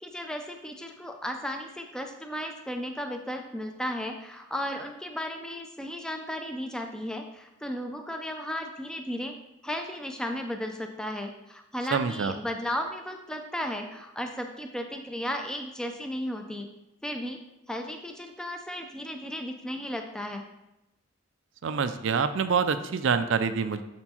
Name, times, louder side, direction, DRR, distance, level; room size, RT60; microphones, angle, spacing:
voice 1, 0.0-9.4 9.6-16.7 17.0-17.4 17.7-20.4, equal, 5° left, 4 dB, 0.4 m, -35 dB
voice 2, 11.9-12.3 21.6-23.8, right 5 dB, 60° right, 11 dB, 0.4 m, -26 dB
6.6 x 4.4 x 4.2 m, 0.93 s
head